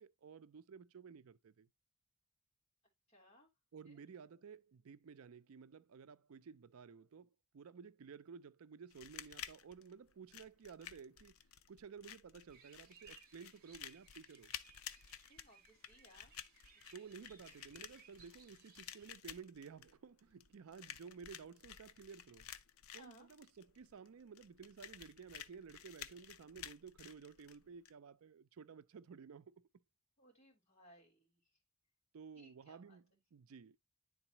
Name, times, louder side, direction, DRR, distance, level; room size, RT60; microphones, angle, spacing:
voice 1, 0.0-1.7 3.7-11.3 11.7-14.5 16.9-22.5 22.9-29.5 32.1-33.0 33.3-33.8, right 6 dB, 80° right, 0.4 m, -54 dB
voice 2, 3.1-3.5 3.9-4.0 15.2-16.3 16.9-17.1 23.0-23.3 30.2-31.4 32.3-33.0, equal, 30° left, 2.9 m, -64 dB
sound 1, 8.9-27.9, left 10 dB, 80° left, 0.5 m, -53 dB
sound 2, 12.5-19.1, right 6 dB, 45° right, 1.1 m, -65 dB
9.9 x 4.0 x 2.8 m
head